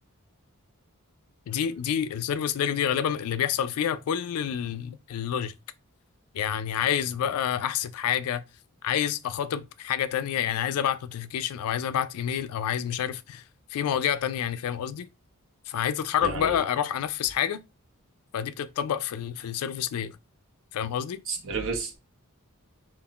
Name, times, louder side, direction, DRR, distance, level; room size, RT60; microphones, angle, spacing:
voice 1, 1.5-5.5 6.3-8.4 8.8-13.4 13.7-15.1 15.7-17.6 18.3-20.2 20.7-21.2, left 9 dB, 70° left, 0.3 m, -28 dB
voice 2, 16.2-16.6 21.3-22.0, right 3 dB, 60° right, 0.9 m, -31 dB
3.6 x 2.4 x 2.3 m
head